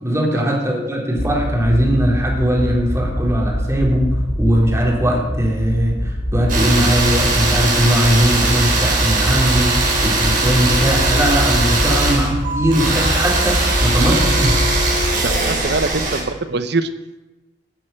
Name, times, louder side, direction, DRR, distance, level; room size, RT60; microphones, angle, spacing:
voice 1, 0.0-14.6, equal, 15° right, -2 dB, 3.4 m, -19 dB
sound 1, 1.2-15.5, equal, 40° left, 4.4 m, -23 dB
sound 2, 6.5-16.2, right 3 dB, 50° right, 4.4 m, -20 dB
voice 2, 15.2-16.9, right 3 dB, 65° right, 12 dB, 0.9 m, -23 dB
12.5 x 7.8 x 9.0 m, 1.1 s
head